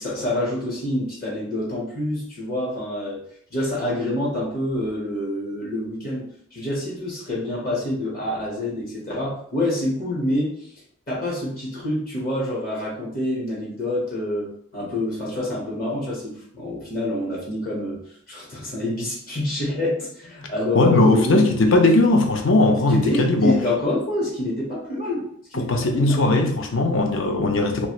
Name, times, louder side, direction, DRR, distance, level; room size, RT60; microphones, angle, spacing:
voice 1, 0.0-3.2 3.5-10.5 11.1-18.0 18.3-21.7 22.9-25.3 25.5-26.3, left 1 dB, 45° left, -5 dB, 1.0 m, -27 dB
voice 2, 20.7-23.6 25.6-27.9, left 2 dB, 65° left, 4 dB, 0.5 m, -18 dB
2.9 x 2.5 x 3.0 m, 0.63 s
head